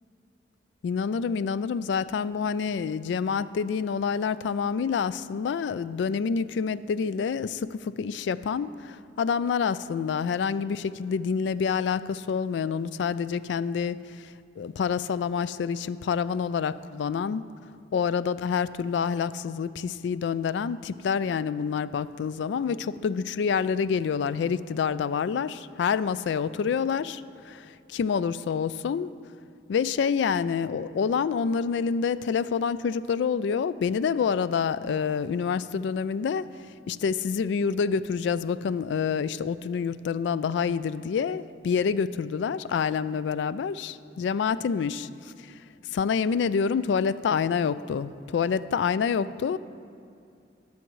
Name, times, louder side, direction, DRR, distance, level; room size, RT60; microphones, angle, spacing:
voice 1, 0.8-14.3 14.6-17.4 17.9-29.1 29.7-36.5 36.9-45.1 45.9-49.6, left 6 dB, 75° left, 16 dB, 0.3 m, -27 dB
20.0 x 7.0 x 3.1 m, 2.4 s
head